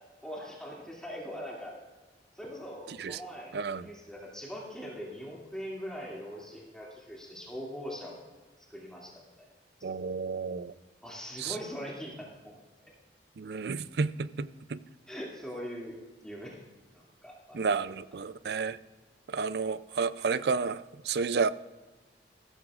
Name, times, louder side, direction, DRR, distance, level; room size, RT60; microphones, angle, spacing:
voice 1, 0.2-1.7 2.4-8.3 8.7-9.5 9.8-9.9 11.0-12.5 12.8-12.9 15.1-16.6 16.9-17.6, equal, 5° left, -4 dB, 2.5 m, -42 dB
voice 2, 3.5-3.9 9.8-10.7 11.4-11.6 13.4-14.8 17.5-18.8 19.3-21.5, right 5 dB, 65° right, 16 dB, 0.4 m, -31 dB
15.0 x 13.5 x 2.5 m, 1.2 s
head